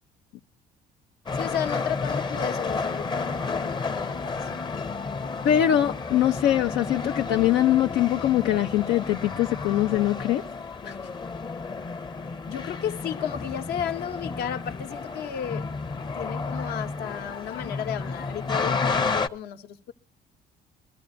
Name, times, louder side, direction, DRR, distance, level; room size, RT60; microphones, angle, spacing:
voice 1, 1.3-4.7 12.5-15.7 16.1-19.9, left 9 dB, 70° left, 0.9 m, -33 dB
sound 1, 1.3-19.3, left 4 dB, 25° left, 0.7 m, -31 dB
voice 2, 5.4-10.4 10.8-11.0, left 12 dB, 90° left, 0.6 m, -22 dB
22.0 x 14.0 x 2.5 m
cardioid pair, 110°, 17 cm